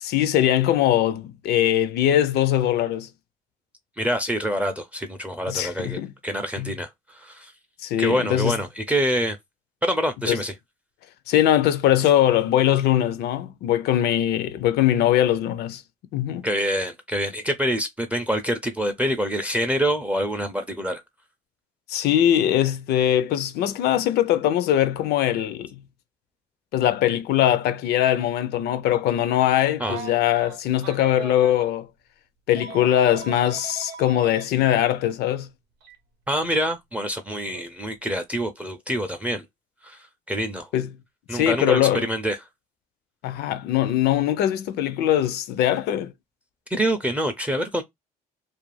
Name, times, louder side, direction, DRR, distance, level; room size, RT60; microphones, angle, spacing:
voice 1, 0.0-3.1 5.5-6.1 6.6-6.7 7.8-8.6 10.3-10.4 11.3-15.8 16.1-16.5 21.9-25.7 26.7-31.9 32.5-35.5 40.7-40.9 41.3-42.1 43.2-46.1, left 11 dB, 75° left, 0.4 m, -21 dB
voice 2, 4.0-7.5 8.0-9.4 9.8-10.5 16.4-21.0 29.8-30.0 36.3-39.4 39.8-40.7 41.3-42.4 46.7-47.8, equal, 10° right, 0.4 m, -26 dB
Telephone, 29.8-31.7 32.6-34.5 35.8-36.0 37.5-37.7, right 6 dB, 85° right, 0.7 m, -39 dB
2.4 x 2.3 x 3.0 m
cardioid pair, 110°, 17 cm